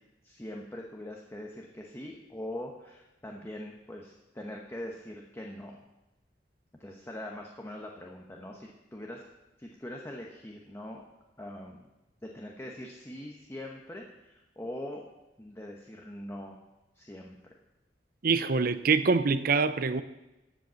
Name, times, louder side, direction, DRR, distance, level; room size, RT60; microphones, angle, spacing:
voice 1, 0.2-5.8 6.8-9.2 9.6-11.1 11.4-11.9 12.2-15.0 15.4-16.6 16.9-17.6, left 1 dB, 15° left, 0 dB, 0.9 m, -42 dB
voice 2, 18.2-20.0, right 4 dB, 55° right, 13 dB, 0.6 m, -25 dB
13.5 x 5.3 x 7.0 m, 0.99 s
head